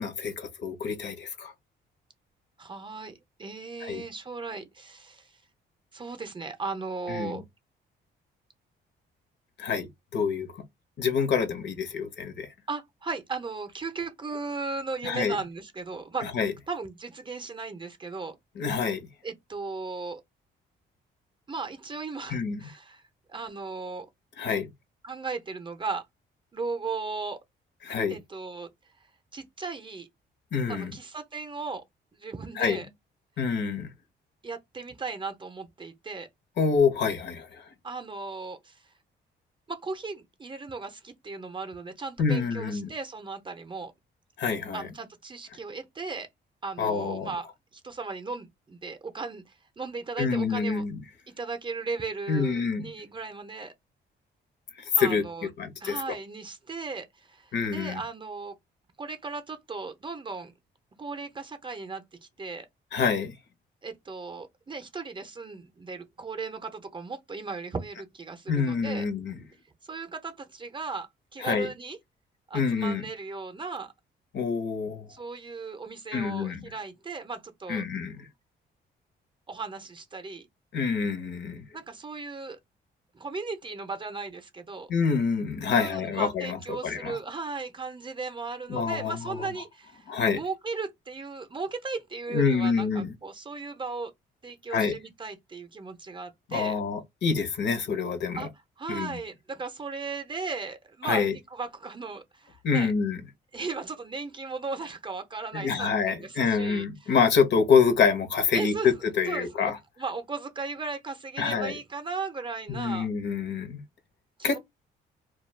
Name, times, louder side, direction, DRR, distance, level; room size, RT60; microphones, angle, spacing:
voice 1, 0.0-1.5 3.8-4.0 7.1-7.4 9.6-10.5 11.0-12.5 15.0-15.4 16.2-16.5 18.6-19.1 22.3-22.7 24.4-24.7 27.8-28.2 30.5-31.0 32.6-32.8 33.4-33.9 36.6-37.7 42.2-42.9 44.4-44.9 46.8-47.3 50.2-51.0 52.3-52.9 55.0-56.0 57.5-58.0 62.9-63.3 68.5-69.4 71.4-71.7 72.5-73.0 74.3-75.1 76.1-76.7 77.7-78.3 80.7-81.7 84.9-87.2 88.7-89.5 90.1-90.4 92.3-93.1 94.7-95.0 96.5-98.5 98.9-99.2 101.0-101.3 102.6-103.2 105.5-109.8 111.4-111.7 112.7-113.8 114.4-114.6, left 5 dB, 60° left, 0.8 m, -27 dB
voice 2, 2.6-5.3 5.9-7.4 12.7-16.4 16.7-18.4 19.2-20.2 21.5-23.0 23.3-24.1 25.0-26.0 26.5-27.4 28.1-28.7 29.3-30.1 30.7-31.8 32.1-32.9 34.4-36.3 37.8-38.9 39.7-43.9 44.7-46.3 46.6-47.5 47.7-50.8 51.4-53.7 55.0-55.5 55.8-58.5 59.0-60.5 61.0-62.7 63.8-69.1 69.9-72.0 72.5-73.9 75.1-77.8 79.5-80.5 81.7-82.6 83.1-84.9 85.8-94.1 94.4-96.8 98.3-98.5 98.8-102.9 103.5-107.1 108.5-108.9 109.3-109.7 110.0-113.1 114.4-114.6, right 4 dB, 25° right, 0.6 m, -36 dB
2.3 x 2.2 x 3.2 m
cardioid pair, 90°, 20 cm